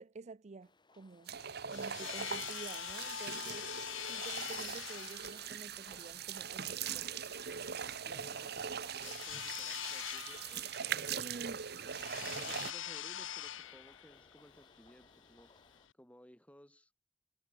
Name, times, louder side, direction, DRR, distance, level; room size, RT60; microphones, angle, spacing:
voice 1, 0.0-1.3 1.7-3.7 4.1-7.2 11.1-11.6, right 3 dB, 35° right, 0.5 m, -49 dB
sound 1, 0.6-15.9, left 3 dB, 25° left, 2.0 m, -64 dB
sound 2, 1.3-15.9, left 11 dB, 80° left, 0.9 m, -44 dB
sound 3, 1.3-12.7, right 7 dB, 55° right, 1.4 m, -41 dB
voice 2, 2.0-2.5 8.0-11.4 12.3-15.5 16.0-16.9, equal, 5° left, 6.8 m, -59 dB
head